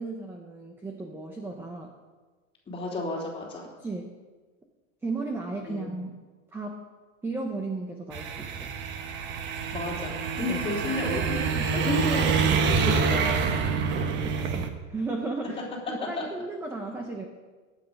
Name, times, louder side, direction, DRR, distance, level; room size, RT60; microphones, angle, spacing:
voice 1, 0.0-1.9 3.8-4.1 5.0-6.2 6.5-6.8 7.2-8.7 10.5-10.6 13.9-17.3, right 3 dB, 5° right, 3 dB, 0.8 m, -35 dB
voice 2, 2.7-3.7 5.7-5.9 9.7-13.5, left 2 dB, 15° left, -3 dB, 3.4 m, -32 dB
sound 1, 8.1-14.7, right 5 dB, 30° right, 1.1 m, -27 dB
21.5 x 8.9 x 5.3 m, 1.3 s
supercardioid pair, 160°, 39 cm